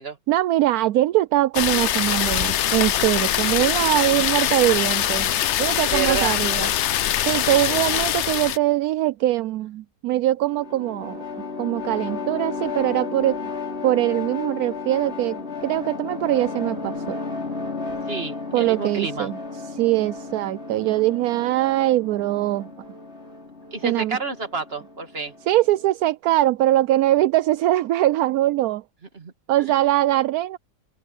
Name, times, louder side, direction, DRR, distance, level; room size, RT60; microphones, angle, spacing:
voice 1, 0.3-5.3 5.6-6.7 7.2-11.2 11.6-13.4 13.8-17.2 18.5-22.7 23.8-24.2 25.5-28.8 29.5-30.6, right 15 dB, 70° right, 0.9 m, -22 dB
sound 1, 1.5-8.6, left 11 dB, 90° left, 0.6 m, -23 dB
voice 2, 5.9-6.4 18.1-19.3 23.7-25.3 29.1-29.3, right 5 dB, 35° right, 2.5 m, -29 dB
sound 2, 10.4-25.9, left 4 dB, 35° left, 4.7 m, -33 dB
open air
omnidirectional pair, 1.9 m